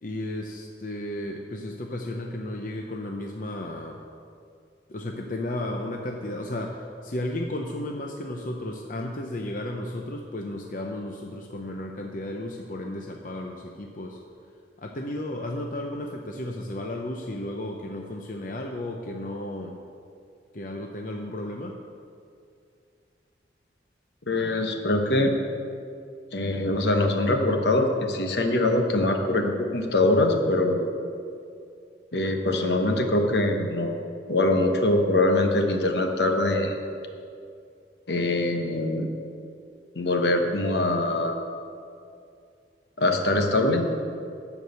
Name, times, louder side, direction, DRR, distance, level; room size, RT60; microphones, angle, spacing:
voice 1, 0.0-4.0 4.9-14.2 14.8-19.8 20.5-21.8, left 1 dB, 50° left, 1 dB, 0.7 m, -33 dB
voice 2, 24.3-25.3 26.3-30.9 32.1-34.0 34.3-36.8 38.1-39.1 39.9-41.4 43.0-43.9, left 2 dB, 70° left, 4 dB, 1.1 m, -23 dB
12.5 x 4.8 x 8.0 m, 2.4 s
head